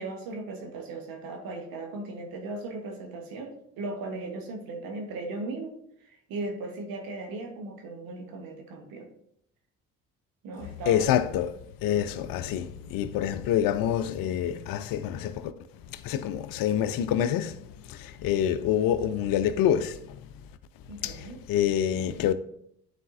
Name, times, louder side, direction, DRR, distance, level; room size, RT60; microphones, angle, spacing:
voice 1, 0.0-9.1 10.4-11.2 20.9-21.4, right 2 dB, 70° right, 1.2 m, -37 dB
voice 2, 10.9-15.5 15.9-17.6 17.9-20.2 21.0-22.3, left 10 dB, 65° left, 0.6 m, -27 dB
9.4 x 4.1 x 2.6 m
hypercardioid pair, 50°, 36 cm